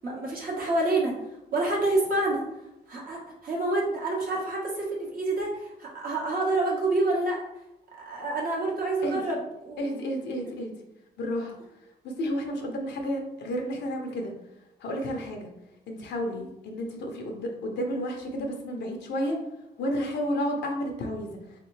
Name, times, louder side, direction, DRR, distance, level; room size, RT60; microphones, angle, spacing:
voice 1, 0.0-1.1 1.5-2.4 2.9-7.4 8.0-9.9 16.4-16.5, right 2 dB, 55° right, -3 dB, 1.4 m, -28 dB
voice 2, 9.8-10.7 11.2-11.6 12.0-14.3 14.8-15.5 15.9-19.4 19.8-21.4, equal, 85° left, 2 dB, 0.8 m, -31 dB
3.6 x 3.3 x 3.2 m, 0.91 s
cardioid pair, 90°, 18 cm